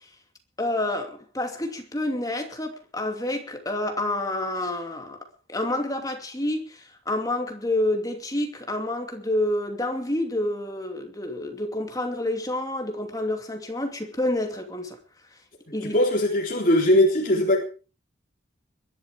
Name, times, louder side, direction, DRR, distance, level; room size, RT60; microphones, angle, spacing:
voice 1, 0.6-5.2 5.5-15.0 15.7-16.0, left 1 dB, 15° left, 2.7 m, -28 dB
voice 2, 15.8-17.6, left 1 dB, 40° left, 3.8 m, -20 dB
22.0 x 11.5 x 5.0 m
head